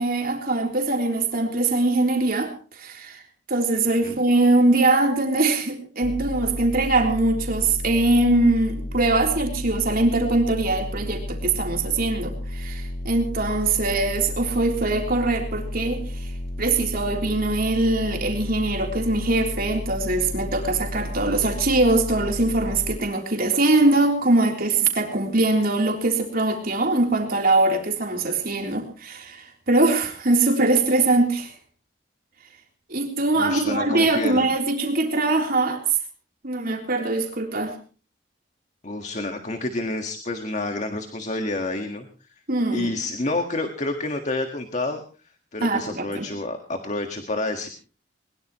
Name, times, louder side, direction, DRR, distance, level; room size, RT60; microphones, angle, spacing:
voice 1, 0.0-3.2 3.5-16.3 16.6-31.5 32.9-36.0 36.4-37.8 42.5-43.0 45.6-46.3, right 2 dB, 55° right, 2 dB, 3.6 m, -22 dB
sound 1, 6.0-23.0, left 1 dB, 60° left, 1.3 m, -32 dB
voice 2, 33.4-34.5 38.8-42.1 42.7-45.0 45.5-47.7, left 2 dB, 40° left, 6 dB, 1.7 m, -29 dB
21.5 x 21.5 x 3.1 m, 0.37 s
head